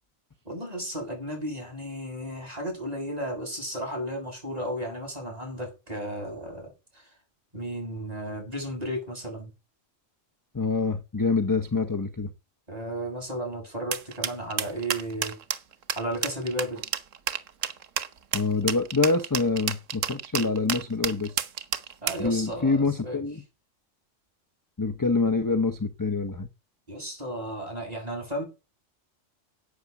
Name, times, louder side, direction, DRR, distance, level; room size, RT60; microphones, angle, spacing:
voice 1, 0.4-7.1 7.5-9.5 12.7-15.4 15.9-16.8 22.0-23.2 26.9-28.4, right 1 dB, 30° right, 7.9 m, -34 dB
voice 2, 10.5-12.3 18.3-21.4 22.2-23.4 24.8-26.5, left 3 dB, 20° left, 0.7 m, -26 dB
sound 1, 13.9-22.3, right 8 dB, 85° right, 1.4 m, -30 dB
11.5 x 8.4 x 6.9 m
omnidirectional pair, 1.3 m